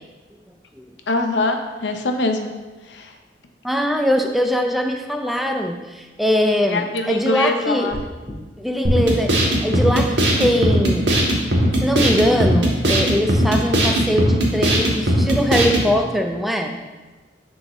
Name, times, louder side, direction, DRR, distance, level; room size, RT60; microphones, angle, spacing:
voice 1, 1.1-2.5 2.9-3.1 6.7-8.0, left 2 dB, 85° left, 5 dB, 0.7 m, -23 dB
voice 2, 3.6-7.9 8.6-11.1 11.7-16.8, equal, ahead, 3 dB, 0.4 m, -21 dB
sound 1, 7.9-8.4, equal, 20° right, 1.8 m, -33 dB
sound 2, 8.8-15.9, right 1 dB, 85° right, 1.3 m, -18 dB
10.0 x 3.7 x 3.0 m, 1.2 s
head